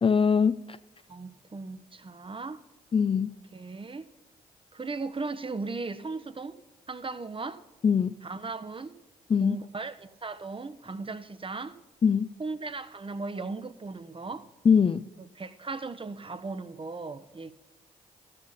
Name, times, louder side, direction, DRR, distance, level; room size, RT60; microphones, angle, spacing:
voice 1, 0.0-0.8 2.9-3.3 7.8-8.1 9.3-9.6 12.0-12.3 14.6-15.0, left 6 dB, 30° left, 0.4 m, -22 dB
voice 2, 1.1-2.6 3.5-4.1 4.7-6.6 6.9-7.6 8.2-8.9 9.4-11.8 12.4-14.5 15.4-17.5, right 3 dB, 30° right, 0.9 m, -37 dB
14.0 x 6.7 x 5.5 m
hypercardioid pair, 40°, 19 cm